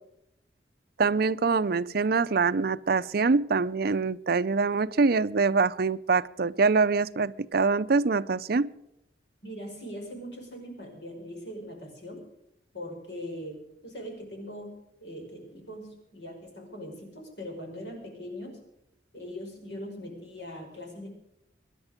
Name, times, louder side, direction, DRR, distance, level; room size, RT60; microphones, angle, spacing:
voice 1, 1.0-8.7, right 4 dB, 60° right, 14 dB, 0.6 m, -24 dB
voice 2, 9.4-12.2 12.7-14.7 15.0-18.6 19.1-21.1, equal, 70° left, 2 dB, 5.6 m, -41 dB
24.0 x 10.5 x 5.1 m, 0.81 s
head